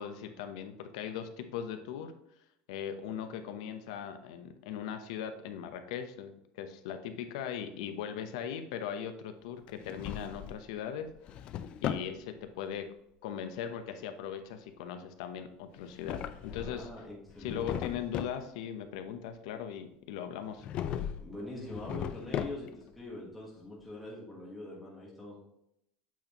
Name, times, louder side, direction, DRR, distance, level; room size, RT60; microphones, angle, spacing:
voice 1, 0.0-2.1 2.7-11.1 11.8-12.9 13.2-16.9 17.4-20.6, left 8 dB, 90° left, 8 dB, 0.8 m, -39 dB
Drawer open or close, 9.7-10.7 11.1-12.1 15.8-16.9 17.3-18.4 20.6-21.3 21.6-22.9, left 9 dB, 35° left, 0.3 m, -37 dB
voice 2, 16.5-17.7 21.2-25.5, left 1 dB, ahead, -6 dB, 1.3 m, -43 dB
8.3 x 4.3 x 3.0 m, 0.78 s
cardioid pair, 170°, 3 cm